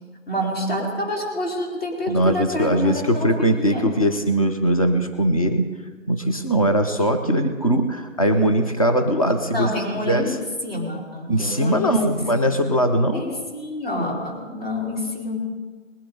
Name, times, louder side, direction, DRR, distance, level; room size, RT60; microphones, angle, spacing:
voice 1, 0.3-3.9 9.5-10.3 10.6-12.2 12.4-12.5 13.1-15.4, left 1 dB, 45° left, -2 dB, 4.5 m, -28 dB
voice 2, 2.1-5.8 6.1-9.7 10.1-10.4 11.3-13.2, right 1 dB, 25° left, 6 dB, 0.7 m, -20 dB
20.5 x 10.5 x 3.9 m, 1.4 s
figure-of-eight pair, 170°, 39 cm